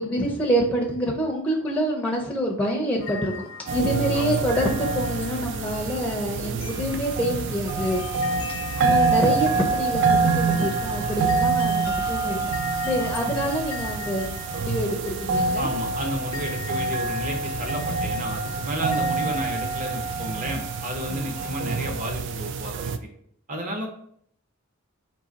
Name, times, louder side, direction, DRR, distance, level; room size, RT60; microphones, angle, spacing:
voice 1, 0.0-8.0 8.8-12.4 12.8-15.7, equal, 5° left, -1 dB, 0.5 m, -26 dB
sound 1, 3.0-22.1, left 4 dB, 65° left, 0.4 m, -41 dB
sound 2, 3.7-23.0, right 4 dB, 60° right, 0.3 m, -26 dB
voice 2, 15.6-23.1 23.5-23.9, equal, 40° right, 2 dB, 0.8 m, -32 dB
3.9 x 2.8 x 3.9 m, 0.66 s
head